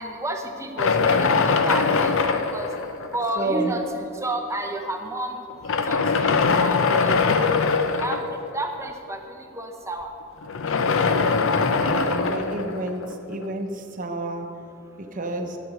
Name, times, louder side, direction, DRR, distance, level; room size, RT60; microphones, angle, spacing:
voice 1, 0.0-2.2 2.5-2.7 3.1-5.4 5.9-7.5 8.0-10.1, right 1 dB, 15° right, 3 dB, 0.7 m, -31 dB
sound 1, 0.8-3.5 4.3-4.4 5.5-8.5 10.4-13.5, left 4 dB, 60° left, 0.6 m, -22 dB
voice 2, 3.4-3.7 11.8-13.0 13.3-14.5 15.1-15.6, right 2 dB, 40° right, 3 dB, 0.9 m, -29 dB
9.8 x 7.7 x 6.3 m, 2.9 s
head